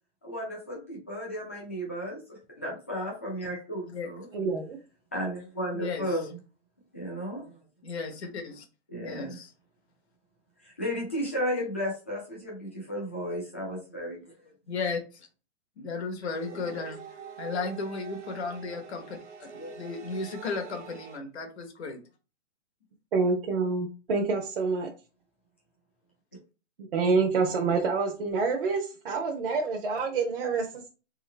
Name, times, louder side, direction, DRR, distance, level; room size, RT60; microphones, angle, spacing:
voice 1, 0.2-4.3 5.1-6.4 6.9-7.6 8.9-9.4 10.6-14.5 16.5-16.7 19.6-19.7, equal, 10° left, -3 dB, 0.5 m, -34 dB
voice 2, 4.3-4.8 23.1-24.9 26.8-30.9, right 4 dB, 50° right, 0 dB, 0.8 m, -27 dB
voice 3, 5.7-6.1 7.8-8.6 8.9-9.5 14.7-15.3 15.8-17.0 17.4-19.0 19.8-22.0, left 4 dB, 65° left, 3 dB, 1.3 m, -34 dB
sound 1, 16.3-21.2, right 7 dB, 75° right, 1.1 m, -44 dB
3.7 x 3.5 x 3.2 m, 0.34 s
hypercardioid pair, 175°, 36 cm